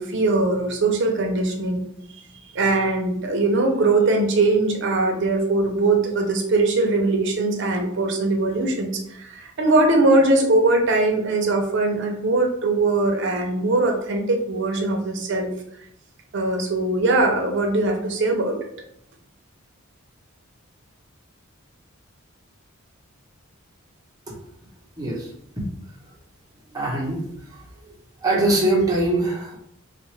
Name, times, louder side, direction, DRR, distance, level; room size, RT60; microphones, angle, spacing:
voice 1, 0.0-1.9 2.5-15.5 16.3-18.6, right 2 dB, 55° right, 3 dB, 0.6 m, -21 dB
voice 2, 25.0-25.3 25.6-25.7 26.7-27.2 27.5-27.9 28.2-29.6, right 2 dB, 15° right, -3 dB, 0.8 m, -23 dB
3.5 x 2.5 x 3.1 m, 0.73 s
head